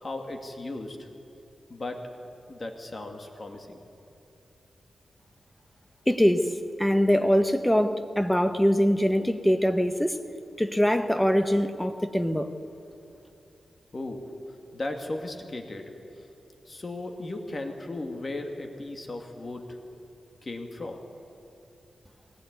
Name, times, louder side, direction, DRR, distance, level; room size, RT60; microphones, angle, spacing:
voice 1, 0.0-1.1 1.7-2.0 2.5-3.8 13.9-14.2 14.7-15.8 16.2-16.3 16.7-19.8 20.4-21.0, left 2 dB, 30° left, 3 dB, 2.3 m, -36 dB
voice 2, 6.1-10.2 10.6-12.5, equal, 5° left, 8 dB, 1.2 m, -23 dB
22.0 x 20.0 x 9.7 m, 2.9 s
wide cardioid pair, 140°, 0 cm